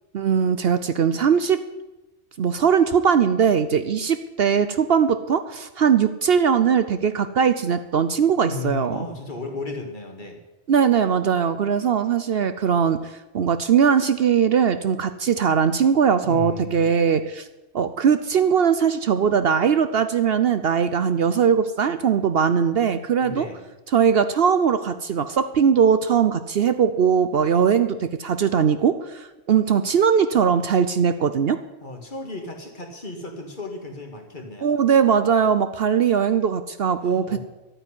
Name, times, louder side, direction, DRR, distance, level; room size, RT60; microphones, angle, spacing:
voice 1, 0.1-1.6 2.4-9.0 10.7-17.5 17.7-23.5 23.9-31.6 34.6-37.4, right 7 dB, 60° right, 11 dB, 0.8 m, -20 dB
voice 2, 8.4-10.4 16.2-17.0 23.2-23.6 31.8-34.7 37.0-37.4, left 3 dB, 40° left, 3 dB, 2.3 m, -34 dB
12.0 x 9.0 x 10.0 m, 1.1 s
omnidirectional pair, 1.2 m